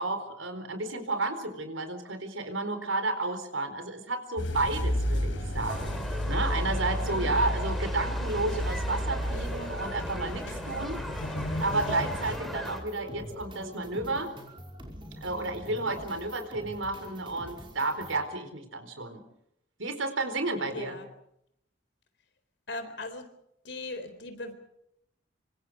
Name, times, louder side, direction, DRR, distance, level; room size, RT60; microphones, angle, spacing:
voice 1, 0.0-5.9 6.3-11.0 11.6-14.3 15.2-19.2 19.8-21.0, right 2 dB, 90° right, 8 dB, 4.4 m, -32 dB
sound 1, 4.4-12.4, equal, 80° left, 4.1 m, -32 dB
sound 2, 4.5-18.2, equal, 25° right, 5.4 m, -44 dB
sound 3, 5.7-12.8, equal, ahead, 3.0 m, -39 dB
voice 2, 7.0-7.4 20.7-21.1 22.7-23.3 23.6-24.5, left 2 dB, 60° left, 9 dB, 4.0 m, -39 dB
26.0 x 25.5 x 5.0 m, 0.77 s
head